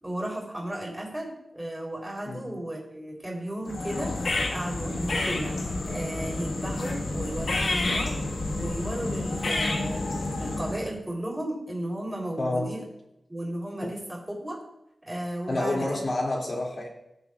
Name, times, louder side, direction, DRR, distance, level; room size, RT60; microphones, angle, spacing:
voice 1, 0.0-8.2 8.5-12.8 13.3-14.6 15.1-16.0, right 1 dB, 15° right, -2 dB, 3.5 m, -34 dB
sound 1, 3.7-10.9, left 2 dB, 80° left, 1.6 m, -29 dB
voice 2, 12.4-12.7 13.8-13.9 15.5-16.9, left 2 dB, 50° left, -1 dB, 2.6 m, -29 dB
17.5 x 7.2 x 2.4 m, 0.84 s
wide cardioid pair, 115°, 0 cm